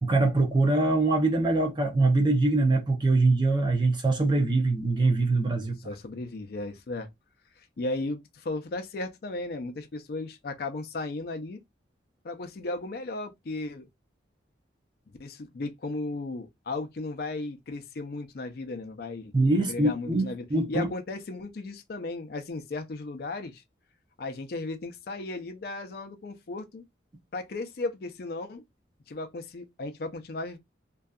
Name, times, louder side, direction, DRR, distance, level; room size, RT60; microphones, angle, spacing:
voice 1, 0.0-5.7 19.3-20.9, right 2 dB, 25° right, 0.5 m, -23 dB
voice 2, 5.6-7.1 7.6-11.6 12.2-13.9 15.2-19.3 19.6-23.6 24.2-26.8 27.3-28.6 29.1-30.6, left 2 dB, 55° left, 0.4 m, -35 dB
2.6 x 2.3 x 2.3 m
head